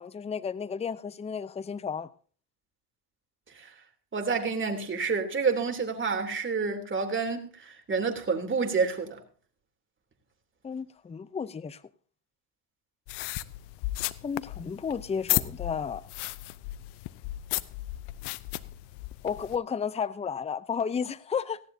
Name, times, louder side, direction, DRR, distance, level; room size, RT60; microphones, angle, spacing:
voice 1, 0.0-2.1 10.6-11.8 14.2-16.0 19.2-21.6, left 6 dB, 15° left, 0.6 m, -33 dB
voice 2, 4.1-9.2, right 5 dB, 25° right, 3.2 m, -29 dB
sound 1, 13.1-19.6, left 18 dB, 65° left, 0.8 m, -34 dB
18.0 x 16.0 x 2.8 m
hypercardioid pair, 75°, 44 cm